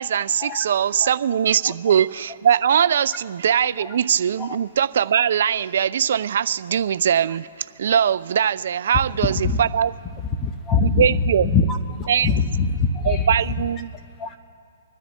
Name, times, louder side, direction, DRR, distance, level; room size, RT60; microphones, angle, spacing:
voice 1, 0.0-7.5 7.8-9.9 11.0-11.5 12.1-12.3 13.1-13.9, right 8 dB, 65° right, 0.4 m, -21 dB
voice 2, 10.4-11.8 12.2-13.3 14.2-14.3, left 4 dB, 20° left, 1.0 m, -22 dB
26.0 x 10.0 x 3.3 m
hypercardioid pair, 140°, 0 cm